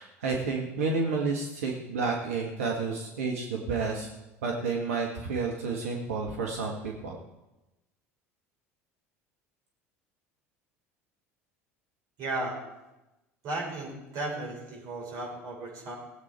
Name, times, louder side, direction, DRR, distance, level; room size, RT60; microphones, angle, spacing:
voice 1, 0.0-4.1 4.4-7.2, right 4 dB, 75° right, 0 dB, 1.7 m, -30 dB
voice 2, 12.2-12.6 13.4-15.9, right 2 dB, 50° right, -3 dB, 5.7 m, -35 dB
18.0 x 8.4 x 4.6 m, 1.0 s
figure-of-eight pair, 70°, 8 cm